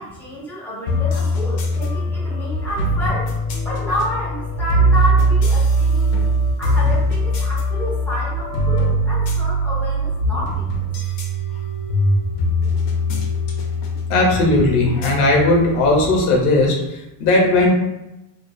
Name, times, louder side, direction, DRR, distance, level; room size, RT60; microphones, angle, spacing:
voice 1, 0.0-3.3 3.6-6.1 6.6-10.9, equal, 5° left, -7 dB, 0.4 m, -29 dB
sound 1, 0.9-16.1, right 1 dB, 85° left, 0.7 m, -21 dB
voice 2, 14.1-17.7, left 2 dB, 40° left, 0 dB, 0.6 m, -17 dB
2.3 x 2.3 x 2.5 m, 0.93 s
supercardioid pair, 145°, 46 cm